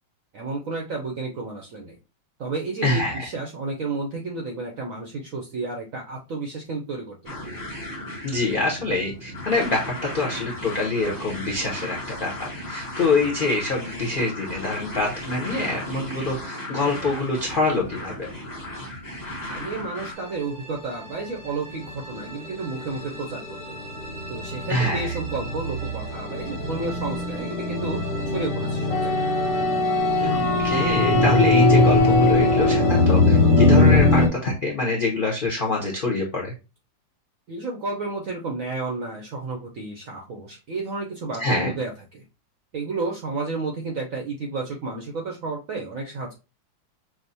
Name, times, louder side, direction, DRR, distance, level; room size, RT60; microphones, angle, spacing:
voice 1, 0.3-2.0 2.4-7.5 19.5-23.8 24.3-29.4 37.5-42.2 42.7-46.3, right 3 dB, 75° right, 1 dB, 0.7 m, -32 dB
voice 2, 2.8-3.3 8.2-18.1 24.7-25.1 30.2-36.5 41.4-41.7, left 3 dB, 85° left, -2 dB, 0.4 m, -25 dB
sound 1, 7.3-20.1, left 1 dB, 15° left, 0.7 m, -35 dB
sound 2, 20.2-34.3, left 2 dB, 30° left, 1.1 m, -22 dB
Wind instrument woodwind instrument, 28.9-33.2, left 3 dB, 65° left, 1.0 m, -25 dB
6.0 x 2.0 x 2.6 m, 0.30 s
omnidirectional pair, 2.1 m